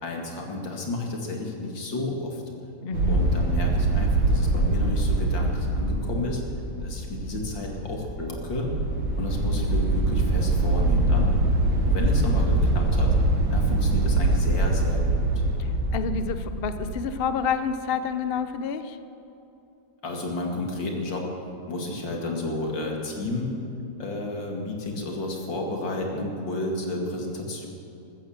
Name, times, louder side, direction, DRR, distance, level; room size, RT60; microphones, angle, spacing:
voice 1, 0.0-2.4 3.1-6.4 6.8-8.7 9.2-11.3 11.8-13.1 13.5-15.5 20.0-21.3 21.7-23.5 24.0-27.7, left 2 dB, 75° left, 1 dB, 2.9 m, -31 dB
voice 2, 2.8-3.3 15.6-19.0, left 6 dB, 60° left, 11 dB, 0.6 m, -29 dB
sound 1, 2.9-17.0, right 2 dB, 85° right, 2.3 m, -24 dB
14.0 x 14.0 x 7.3 m, 2.9 s
omnidirectional pair, 2.0 m